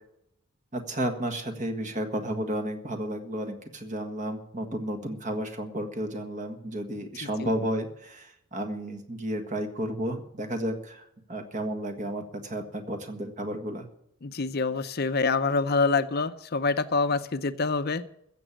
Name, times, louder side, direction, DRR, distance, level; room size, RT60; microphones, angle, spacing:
voice 1, 0.7-13.9, right 1 dB, 35° right, 7 dB, 1.6 m, -32 dB
voice 2, 14.2-18.0, left 4 dB, 45° left, 11 dB, 0.6 m, -26 dB
15.5 x 7.4 x 9.0 m, 0.77 s
head